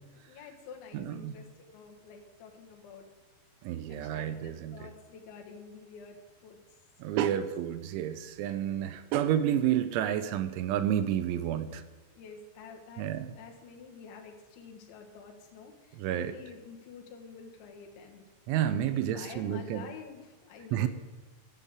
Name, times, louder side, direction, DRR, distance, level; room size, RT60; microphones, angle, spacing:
voice 1, 0.1-3.1 3.6-6.6 7.0-7.5 12.1-18.2 18.9-20.9, left 5 dB, 75° left, 2 dB, 3.7 m, -49 dB
voice 2, 0.9-1.3 3.6-4.8 7.0-11.8 13.0-13.3 16.0-16.3 18.5-19.8 20.7-20.9, right 10 dB, 85° right, 11 dB, 3.1 m, -30 dB
12.0 x 7.3 x 8.1 m, 1.2 s
omnidirectional pair, 5.4 m